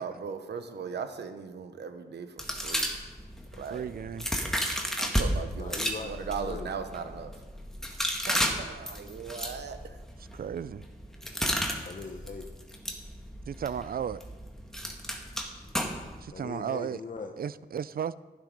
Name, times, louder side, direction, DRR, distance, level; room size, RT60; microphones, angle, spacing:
voice 1, 0.0-2.9 3.5-3.9 5.0-7.3 7.9-8.0 8.3-10.0, right 6 dB, 90° right, 1.0 m, -38 dB
sound 1, 2.4-5.3 5.7-16.2, equal, 5° left, 1.8 m, -33 dB
voice 2, 3.7-4.2 10.3-10.8 13.5-14.2 16.2-17.0 17.4-18.2, right 8 dB, 60° right, 0.4 m, -34 dB
voice 3, 5.6-6.2 6.4-6.7 11.8-12.5 16.3-17.3, left 4 dB, 50° left, 0.9 m, -40 dB
11.5 x 10.5 x 5.3 m
cardioid pair, 60°, 17 cm